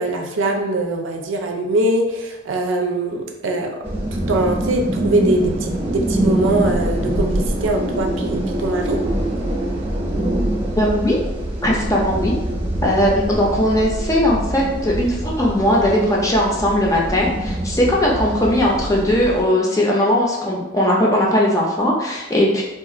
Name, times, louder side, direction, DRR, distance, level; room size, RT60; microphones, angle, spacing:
voice 1, 0.0-3.7 4.3-9.0, right 2 dB, 85° right, 2 dB, 0.5 m, -22 dB
sound 1, 3.8-19.4, right 1 dB, 30° right, 0.7 m, -24 dB
voice 2, 10.8-11.2 11.6-12.3 12.8-22.6, left 1 dB, 15° left, -3 dB, 0.5 m, -18 dB
2.4 x 2.4 x 3.7 m, 1.0 s
head